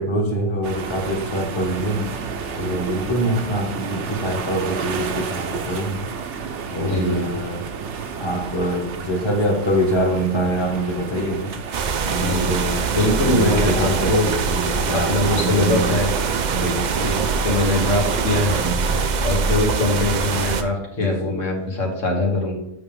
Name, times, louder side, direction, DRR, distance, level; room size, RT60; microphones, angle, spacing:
voice 1, 0.0-2.1 2.6-6.1 6.7-7.6 8.2-11.5 12.1-16.0 16.5-17.0 18.6-19.1 21.0-21.4, right 1 dB, 25° left, 0 dB, 1.2 m, -25 dB
sound 1, 0.6-18.6, right 5 dB, 70° right, 1.0 m, -31 dB
voice 2, 6.8-7.4 12.2-12.4 12.9-14.3 14.9-16.1 16.9-18.6 19.2-22.5, left 2 dB, 80° left, 0 dB, 1.8 m, -22 dB
sound 2, 11.7-20.6, right 5 dB, 55° right, 0.5 m, -23 dB
7.9 x 5.2 x 3.6 m, 0.83 s
omnidirectional pair, 1.3 m